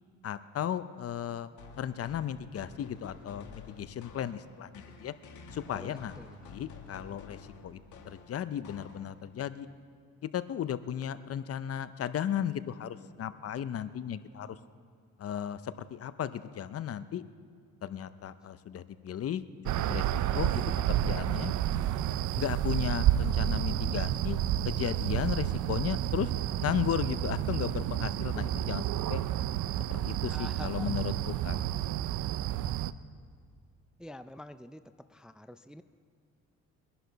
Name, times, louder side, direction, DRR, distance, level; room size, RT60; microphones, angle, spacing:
voice 1, 0.2-1.5 1.8-5.1 5.5-6.1 6.4-7.8 8.1-9.7 10.2-14.6 15.2-17.2 17.8-19.4 19.8-21.5 22.4-24.4 24.6-26.3 26.6-28.8 29.1-29.2 29.9-31.6, left 9 dB, 50° left, 13 dB, 0.6 m, -35 dB
sound 1, 1.6-9.4, left 4 dB, 75° left, 1.9 m, -50 dB
voice 2, 5.7-6.5 28.3-28.6 30.3-30.9 34.0-35.8, left 1 dB, 5° right, 11 dB, 0.4 m, -47 dB
sound 2, 19.7-32.9, right 12 dB, 75° right, 0.5 m, -30 dB
22.5 x 11.5 x 4.0 m, 2.2 s
cardioid pair, 90°, 30 cm